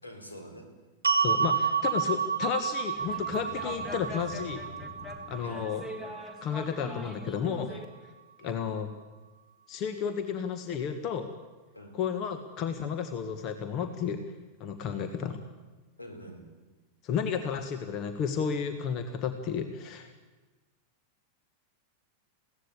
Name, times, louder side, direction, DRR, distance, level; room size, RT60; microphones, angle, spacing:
voice 1, 0.0-0.6 5.4-5.7 8.4-8.6 11.7-11.9 16.0-16.4, equal, 80° left, 3 dB, 4.3 m, -45 dB
sound 1, 1.0-7.3, right 6 dB, 75° right, 1.1 m, -31 dB
voice 2, 1.2-4.6 5.3-5.8 6.4-7.7 8.4-8.9 9.7-11.3 11.9-14.2 14.6-15.4 17.0-20.1, left 7 dB, 40° left, 8 dB, 1.6 m, -32 dB
sound 2, 2.9-7.8, left 1 dB, 20° left, 2.9 m, -43 dB
21.5 x 17.0 x 8.6 m, 1.2 s
figure-of-eight pair, 90°, 0 cm